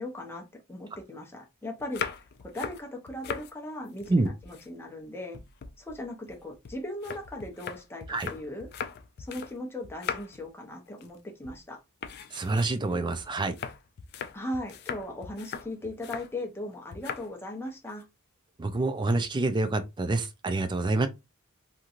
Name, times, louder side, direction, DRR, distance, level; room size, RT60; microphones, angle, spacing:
voice 1, 0.0-2.0 2.4-5.4 5.8-8.7 9.2-11.8 14.3-18.0, left 1 dB, 10° left, 0.7 m, -38 dB
sound 1, 1.8-3.5 3.9-5.1 5.3-9.6 9.8-10.5 10.9-11.2 11.4-11.6 12.0-16.3 16.9-17.3 17.6-18.0, left 7 dB, 50° left, 0.4 m, -39 dB
voice 2, 12.3-13.6 18.6-21.1, right 2 dB, 20° right, 0.4 m, -27 dB
2.9 x 2.7 x 2.4 m
head